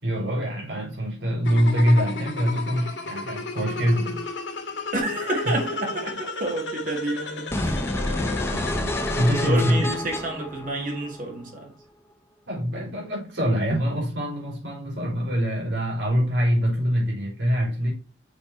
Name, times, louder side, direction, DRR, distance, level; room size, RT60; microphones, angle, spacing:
voice 1, 0.0-4.3 5.4-5.7 8.2-10.0 12.5-17.9, equal, 80° right, 4.2 m, -24 dB
sound 1, 1.5-9.4, left 3 dB, 85° left, 1.6 m, -33 dB
voice 2, 4.9-8.0 9.4-11.7, right 1 dB, 45° right, 1.8 m, -30 dB
sound 2, 7.5-11.5, left 1 dB, 15° left, 0.9 m, -28 dB
6.4 x 4.9 x 4.3 m
head